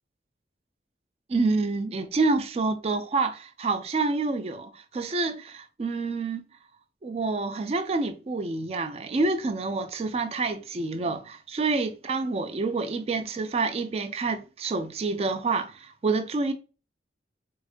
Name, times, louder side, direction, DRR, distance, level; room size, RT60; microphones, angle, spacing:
voice 1, 1.3-6.4 7.0-16.5, right 3 dB, 35° right, 0.3 m, -28 dB
4.2 x 2.4 x 2.4 m
head